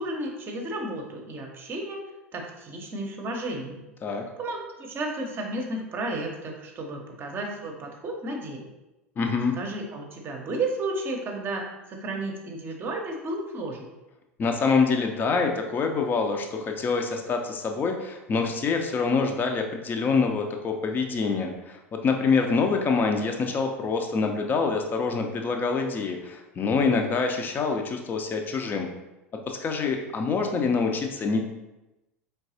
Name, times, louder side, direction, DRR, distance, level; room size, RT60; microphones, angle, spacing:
voice 1, 0.0-2.0 2.3-3.8 4.1-8.6 9.6-13.9, right 2 dB, 30° right, 1 dB, 0.8 m, -33 dB
voice 2, 9.2-9.5 14.4-28.9 29.5-31.4, left 4 dB, 25° left, 4 dB, 0.6 m, -26 dB
4.6 x 3.5 x 2.7 m, 0.98 s
figure-of-eight pair, 80°, 8 cm